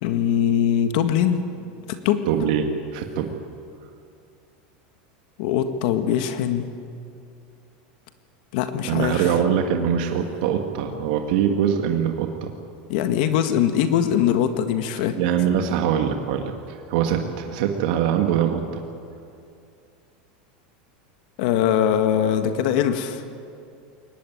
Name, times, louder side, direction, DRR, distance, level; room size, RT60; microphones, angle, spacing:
voice 1, 0.0-1.4 2.0-2.2 5.4-6.8 8.5-9.3 12.9-15.2 21.4-23.2, left 9 dB, 65° left, 8 dB, 1.7 m, -22 dB
voice 2, 2.3-3.4 8.8-12.5 15.2-18.8, right 8 dB, 70° right, 4 dB, 1.9 m, -23 dB
22.5 x 18.5 x 9.4 m, 2.5 s
supercardioid pair, 145°, 5 cm